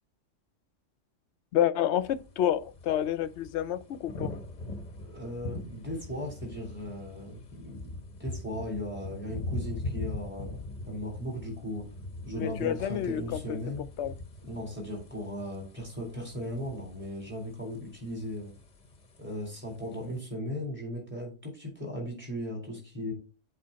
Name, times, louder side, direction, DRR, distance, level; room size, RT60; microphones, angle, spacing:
voice 1, 1.5-4.3 12.4-13.6 14.0-14.1, left 11 dB, 70° left, 0.9 m, -29 dB
sound 1, 2.0-20.2, left 2 dB, 40° left, 1.0 m, -42 dB
voice 2, 5.0-7.9 8.2-10.6 10.9-11.8 12.3-13.9 14.4-18.5 19.2-23.1, left 1 dB, 10° right, 4.0 m, -37 dB
7.7 x 4.2 x 5.6 m
omnidirectional pair, 1.3 m